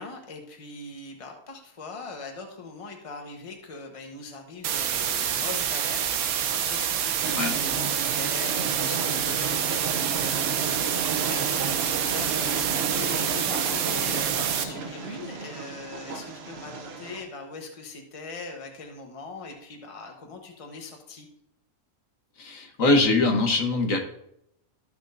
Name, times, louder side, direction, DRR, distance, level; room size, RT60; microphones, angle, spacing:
voice 1, 0.0-6.1 6.5-11.6 12.1-21.3, left 3 dB, 25° left, 3 dB, 1.1 m, -41 dB
sound 1, 4.6-14.6, right 9 dB, 80° right, 1.2 m, -27 dB
Train, 7.2-17.2, right 4 dB, 50° right, 1.0 m, -33 dB
voice 2, 22.4-24.0, left 2 dB, 65° left, 2 dB, 1.5 m, -22 dB
13.5 x 6.1 x 2.6 m, 0.76 s
omnidirectional pair, 1.5 m